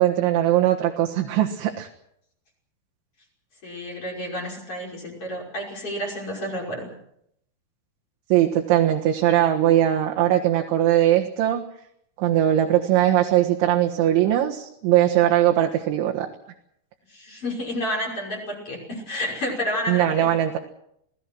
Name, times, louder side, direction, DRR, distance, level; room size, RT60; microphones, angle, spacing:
voice 1, 0.0-1.9 8.3-11.6 12.2-16.3 19.9-20.6, right 12 dB, 75° right, 0 dB, 3.8 m, -20 dB
voice 2, 3.6-6.9 17.1-20.3, left 1 dB, 30° left, -1 dB, 6.3 m, -30 dB
28.0 x 18.5 x 6.2 m, 0.74 s
omnidirectional pair, 5.5 m